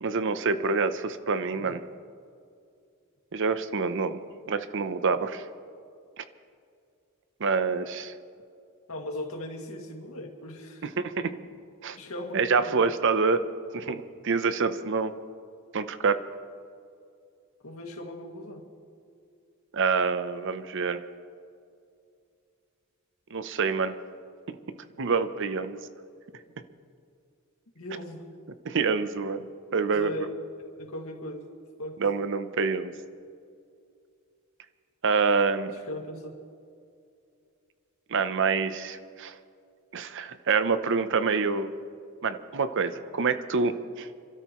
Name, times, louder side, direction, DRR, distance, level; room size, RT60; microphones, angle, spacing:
voice 1, 0.0-1.8 3.3-4.2 4.5-5.5 6.2-6.3 7.4-8.1 11.0-11.3 11.8-12.0 12.3-13.5 13.7-15.1 15.7-16.2 19.7-21.0 23.3-23.9 25.0-25.8 28.6-29.5 29.7-30.1 32.0-32.9 35.0-35.7 38.1-39.3 39.9-41.7 42.2-44.1, right 4 dB, 60° right, 11 dB, 0.7 m, -26 dB
voice 2, 8.9-10.8 11.9-12.9 17.6-18.6 27.8-28.2 29.9-30.3 30.7-31.5 31.8-32.0 35.7-36.3, left 1 dB, 75° left, 1 dB, 2.2 m, -38 dB
28.5 x 13.0 x 3.1 m, 2.4 s
head